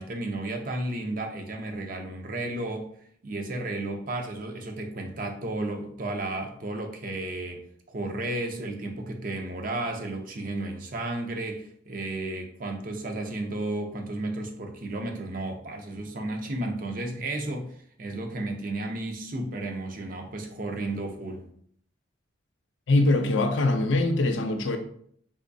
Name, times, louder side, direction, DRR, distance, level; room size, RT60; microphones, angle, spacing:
voice 1, 0.0-2.9 3.2-17.7 18.0-21.5, right 2 dB, 45° right, 0.5 m, -33 dB
voice 2, 22.9-24.8, left 2 dB, 80° left, 0.5 m, -23 dB
3.6 x 3.0 x 2.6 m
head